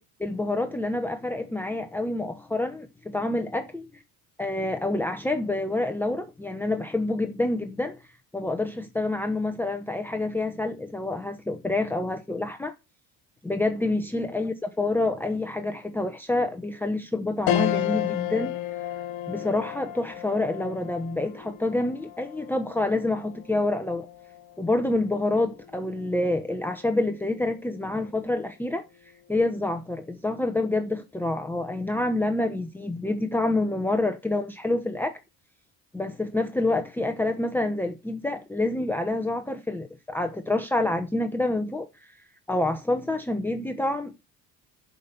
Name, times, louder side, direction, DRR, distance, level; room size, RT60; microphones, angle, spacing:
voice 1, 0.2-3.9 4.4-8.0 8.3-12.7 13.4-18.6 19.3-24.1 24.6-28.8 29.3-35.2 35.9-42.1 42.5-44.3, left 2 dB, 5° left, 0.8 m, -27 dB
sound 1, 17.5-27.1 27.5-27.6 29.0-29.4, left 12 dB, 65° left, 1.6 m, -33 dB
11.5 x 5.3 x 6.8 m
cardioid pair, 135°, 37 cm